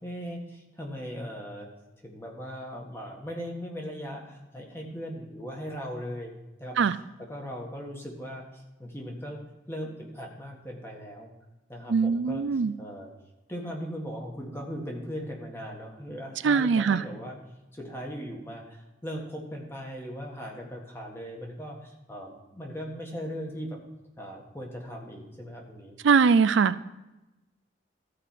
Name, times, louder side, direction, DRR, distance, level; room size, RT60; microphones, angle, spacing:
voice 1, 0.0-1.7 2.0-6.3 6.6-9.4 9.7-11.3 11.7-13.1 13.5-17.4 17.7-23.8 24.2-25.9, equal, 15° left, 0 dB, 1.5 m, -39 dB
voice 2, 11.9-12.7 16.4-17.0 26.0-26.7, right 5 dB, 85° right, 15 dB, 0.4 m, -21 dB
13.5 x 5.0 x 5.7 m, 0.99 s
head